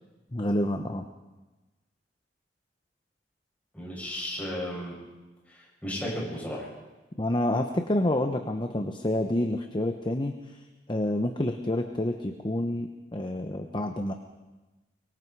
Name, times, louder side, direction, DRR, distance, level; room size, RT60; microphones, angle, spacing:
voice 1, 0.3-1.1 7.2-10.6 10.9-14.1, left 1 dB, 25° left, 6 dB, 1.0 m, -28 dB
voice 2, 3.7-5.0 5.5-6.7, equal, 10° left, -5 dB, 8.0 m, -34 dB
24.0 x 23.0 x 4.8 m, 1.1 s
head